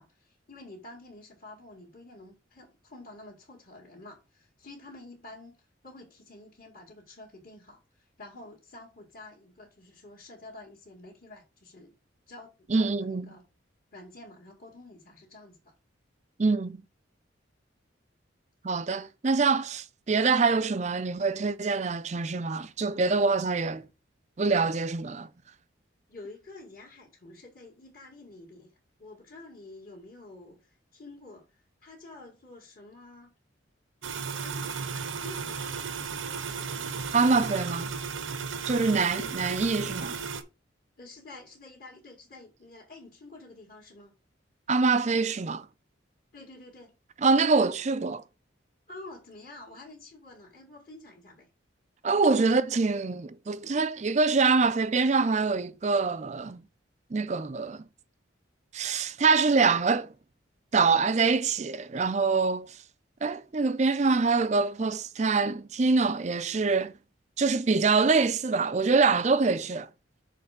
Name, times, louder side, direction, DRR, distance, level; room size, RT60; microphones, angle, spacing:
voice 1, 0.0-11.9 12.3-13.4 13.9-15.7 26.1-28.7 29.0-33.3 34.4-36.9 39.1-39.4 41.0-44.1 46.3-47.0 48.9-51.5 52.1-52.6, left 2 dB, 45° left, 1.9 m, -49 dB
voice 2, 12.7-13.3 16.4-16.8 18.6-23.9 24.4-25.3 37.1-37.9 38.7-40.2 44.7-45.7 47.2-48.2 52.0-56.6 57.1-57.8 58.7-60.1 60.7-62.8 63.2-66.9 67.4-69.9, right 4 dB, 35° right, 0.4 m, -25 dB
sound 1, 34.0-40.4, right 5 dB, 85° right, 0.9 m, -35 dB
6.5 x 3.3 x 5.7 m
head